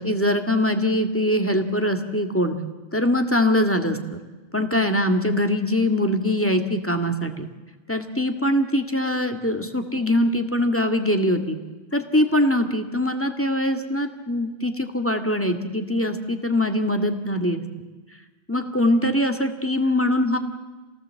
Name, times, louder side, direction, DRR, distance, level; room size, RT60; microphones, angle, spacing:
voice 1, 0.0-2.6 2.9-4.2 4.5-7.5 7.9-11.6 11.9-17.6 18.5-20.4, left 1 dB, 10° left, 5 dB, 1.9 m, -22 dB
27.5 x 18.0 x 7.7 m, 1.2 s
omnidirectional pair, 1.1 m